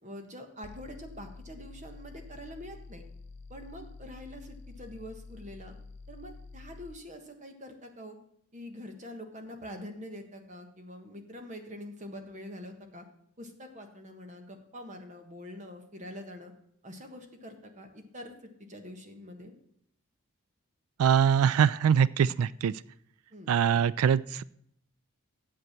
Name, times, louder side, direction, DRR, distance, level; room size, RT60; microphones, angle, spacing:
voice 1, 0.0-3.0 3.5-5.7 6.1-8.2 8.5-13.1 13.4-16.5 16.8-18.3 18.7-19.5 23.3-23.5, left 1 dB, 35° right, 5 dB, 1.4 m, -45 dB
sound 1, 0.6-7.0, left 3 dB, 30° left, 0.4 m, -48 dB
voice 2, 21.0-22.7 23.5-24.4, right 8 dB, 75° right, 19 dB, 0.3 m, -23 dB
8.3 x 7.7 x 7.3 m, 0.70 s
head